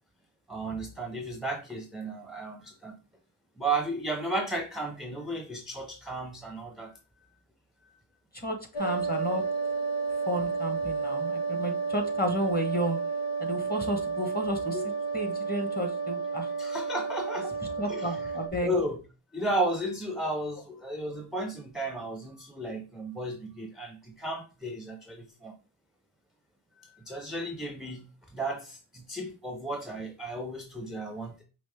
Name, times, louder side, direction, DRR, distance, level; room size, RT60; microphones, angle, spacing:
voice 1, 0.5-3.0 3.6-6.9 7.8-8.0 14.7-14.9 16.6-17.5 17.9-18.4 18.6-19.0 19.3-25.5 26.8-31.4, right 1 dB, ahead, 3 dB, 0.7 m, -34 dB
voice 2, 8.4-9.4 10.3-13.0 13.4-14.8 15.1-16.5 17.8-18.7, equal, 20° left, 4 dB, 1.1 m, -32 dB
sound 1, 8.7-18.5, right 5 dB, 80° left, 0.8 m, -31 dB
5.2 x 3.0 x 3.4 m, 0.32 s
wide cardioid pair, 80°, 50 cm